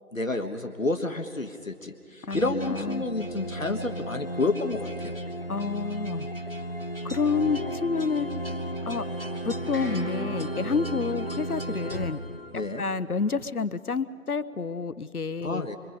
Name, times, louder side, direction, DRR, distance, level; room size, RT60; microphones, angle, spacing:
voice 1, 0.1-5.1 12.5-12.8 15.4-15.8, left 2 dB, 60° left, 6 dB, 1.4 m, -30 dB
voice 2, 2.2-3.1 5.5-6.3 7.0-8.3 8.9-9.0 9.4-12.2 12.5-15.7, left 5 dB, 80° left, 15 dB, 1.0 m, -29 dB
sound 1, 2.3-13.0, equal, 40° left, 0.7 m, -34 dB
sound 2, 8.3-13.4, equal, ahead, 6.0 m, -42 dB
25.0 x 25.0 x 5.3 m, 2.4 s
figure-of-eight pair, 175°, 44 cm